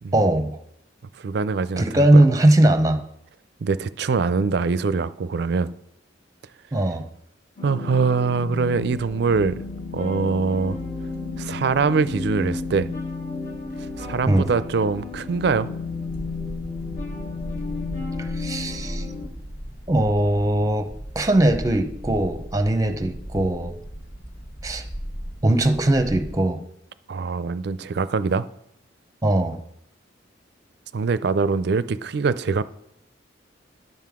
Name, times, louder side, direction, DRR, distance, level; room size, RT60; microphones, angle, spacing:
voice 1, 0.1-0.6 1.8-3.0 6.7-7.1 14.3-14.5 18.2-19.1 19.9-20.9 21.1-23.7 24.6-24.8 25.4-26.6 29.2-29.6, right 1 dB, 20° right, 0.7 m, -20 dB
voice 2, 1.2-2.2 3.6-5.7 7.6-9.6 9.9-10.8 11.4-12.9 14.0-15.7 27.1-28.5 30.9-32.6, right 4 dB, 60° right, 0.4 m, -23 dB
sound 1, 7.6-19.3, left 4 dB, 45° left, 1.5 m, -33 dB
sound 2, 8.6-26.3, equal, 60° left, 2.1 m, -38 dB
10.5 x 7.6 x 3.6 m
head